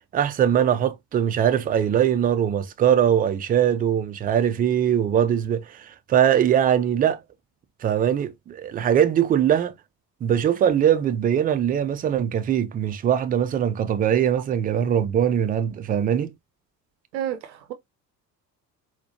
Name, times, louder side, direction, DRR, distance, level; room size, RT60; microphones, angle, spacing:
voice 1, 0.1-7.2 7.8-9.7 10.2-16.3, right 9 dB, 20° right, 0.3 m, -21 dB
voice 2, 17.1-17.7, right 10 dB, 85° right, 0.6 m, -30 dB
4.2 x 2.1 x 2.7 m
figure-of-eight pair, 55°, 49 cm